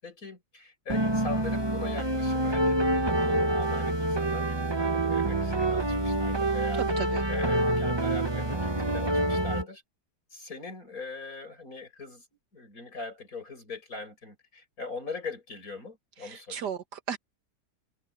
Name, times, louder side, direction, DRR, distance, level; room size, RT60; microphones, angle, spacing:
voice 1, 0.0-2.8 3.1-9.8 10.3-12.3 12.5-16.7, left 3 dB, 55° left, 7.5 m, -41 dB
sound 1, 0.9-9.7, right 1 dB, 15° right, 1.2 m, -27 dB
voice 2, 6.8-7.2 16.2-17.2, right 8 dB, 90° right, 2.1 m, -35 dB
omnidirectional pair, 1.7 m